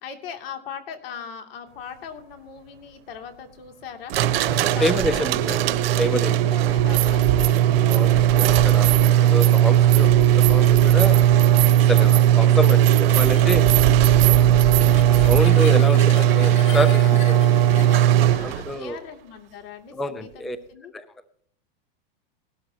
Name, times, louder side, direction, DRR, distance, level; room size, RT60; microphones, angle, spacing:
voice 1, 0.0-4.1 4.7-5.8 6.1-7.5 12.0-12.4 18.2-20.9, left 7 dB, 70° left, 5 dB, 2.8 m, -40 dB
sound 1, 4.1-18.8, right 12 dB, 70° right, 1.1 m, -17 dB
voice 2, 4.4-5.6 6.0-6.3 7.9-11.2 11.9-13.7 14.3-14.8 15.1-17.6 18.4-19.0 19.9-20.6 20.9-21.0, equal, ahead, 11 dB, 0.4 m, -28 dB
sound 2, 5.0-5.1 6.7-7.6 7.9-15.4, right 12 dB, 55° right, 2.5 m, -26 dB
sound 3, 8.9-18.7, left 5 dB, 40° left, 1.8 m, -39 dB
19.5 x 12.5 x 2.9 m, 0.63 s
supercardioid pair, 150°, 30 cm